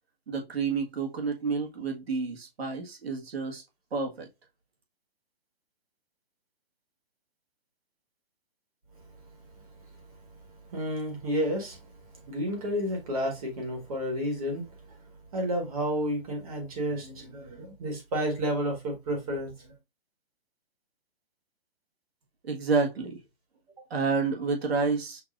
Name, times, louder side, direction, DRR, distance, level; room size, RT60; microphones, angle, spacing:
voice 1, 0.3-3.6 3.9-4.3 22.4-23.2 23.9-25.2, right 4 dB, 85° right, 1.7 m, -29 dB
voice 2, 8.9-19.7, equal, 35° right, 1.5 m, -32 dB
5.9 x 2.7 x 2.5 m
hypercardioid pair, 165°, 30 cm